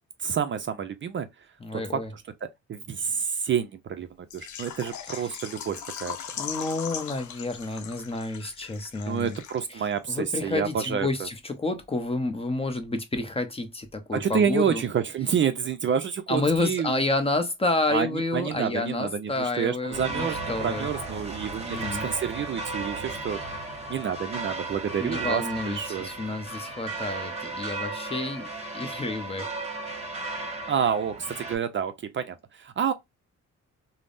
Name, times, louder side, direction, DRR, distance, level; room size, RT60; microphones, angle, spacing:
voice 1, 0.2-1.3 1.7-1.8 2.4-4.1 4.3-6.2 9.1-11.3 14.1-17.0 17.9-23.4 23.9-26.1 30.7-32.9, right 7 dB, 40° right, 0.4 m, -28 dB
voice 2, 1.6-2.1 6.4-9.4 9.7-14.8 16.3-20.9 21.6-22.1 25.0-28.5 28.7-29.5, left 2 dB, 20° left, 0.7 m, -29 dB
Water / Liquid, 4.3-9.9 10.2-10.3 10.7-10.8, left 8 dB, 70° left, 0.7 m, -39 dB
sound 1, 19.9-31.5, right 3 dB, 20° right, 1.2 m, -35 dB
3.3 x 2.0 x 2.4 m
cardioid pair, 90°, 30 cm